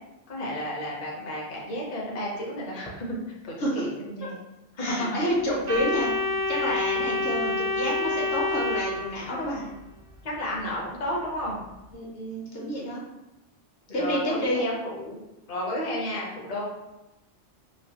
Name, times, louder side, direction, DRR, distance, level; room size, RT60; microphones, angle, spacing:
voice 1, 0.3-3.2 3.4-4.4 10.2-11.6 13.9-15.2 15.5-16.6, left 1 dB, 40° left, -3 dB, 0.6 m, -32 dB
voice 2, 4.8-6.1 6.5-9.7 11.9-13.0 13.9-14.6, equal, 60° left, -3 dB, 0.9 m, -29 dB
Organ, 5.7-9.6, left 2 dB, 60° right, 0.5 m, -28 dB
3.2 x 2.5 x 2.7 m, 0.98 s
omnidirectional pair, 1.2 m